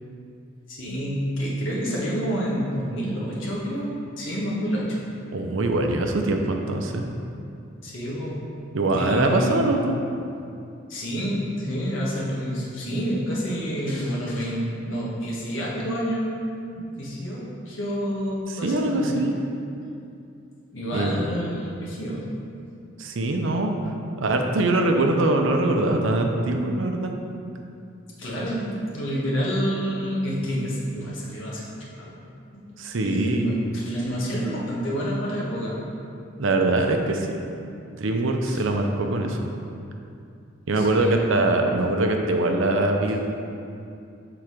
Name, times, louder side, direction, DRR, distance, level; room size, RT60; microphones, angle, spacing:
voice 1, 0.7-5.0 7.8-8.5 8.8-9.8 10.9-16.3 16.7-19.3 20.7-22.2 28.2-28.7 28.9-32.2 32.5-32.7 33.0-35.8 38.5-38.6 40.7-41.2, equal, 75° left, -5 dB, 1.3 m, -28 dB
voice 2, 5.3-7.1 8.7-9.9 18.5-19.3 20.9-21.2 23.0-23.7 24.2-27.1 32.8-33.5 36.4-37.4 37.9-39.5 40.7-43.2, right 2 dB, 75° right, 3 dB, 0.6 m, -23 dB
5.9 x 3.8 x 4.9 m, 2.5 s
head